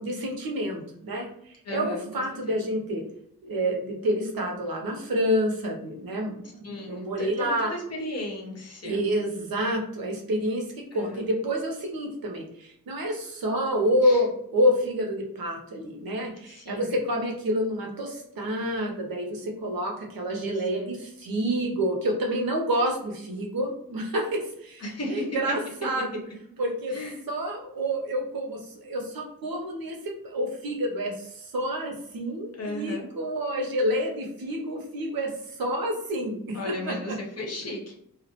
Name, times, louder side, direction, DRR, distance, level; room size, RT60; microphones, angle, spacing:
voice 1, 0.0-3.0 3.4-7.7 8.8-10.6 10.9-24.3 24.6-24.8 25.1-26.1 26.6-26.9 27.3-35.3 35.6-36.6 36.9-37.0, equal, 75° right, 0 dB, 0.7 m, -28 dB
voice 2, 1.6-2.6 6.6-9.0 10.9-11.2 14.0-14.2 16.4-16.9 20.5-20.9 24.8-25.3 26.9-27.2 32.6-33.1 36.5-37.9, left 1 dB, 45° left, -1 dB, 0.7 m, -35 dB
2.3 x 2.1 x 2.8 m, 0.73 s
wide cardioid pair, 135°, 36 cm